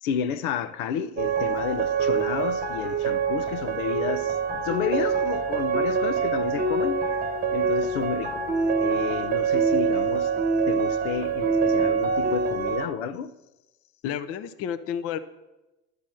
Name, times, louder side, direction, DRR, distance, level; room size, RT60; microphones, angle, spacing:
voice 1, 0.0-7.2 7.5-8.5 8.8-10.3 10.7-13.3, left 8 dB, 70° left, 0.7 m, -31 dB
sound 1, 1.2-12.9, right 5 dB, 20° right, 1.1 m, -25 dB
voice 2, 14.0-15.2, left 9 dB, 35° left, 0.5 m, -31 dB
11.5 x 5.9 x 7.6 m
supercardioid pair, 110°, 45 cm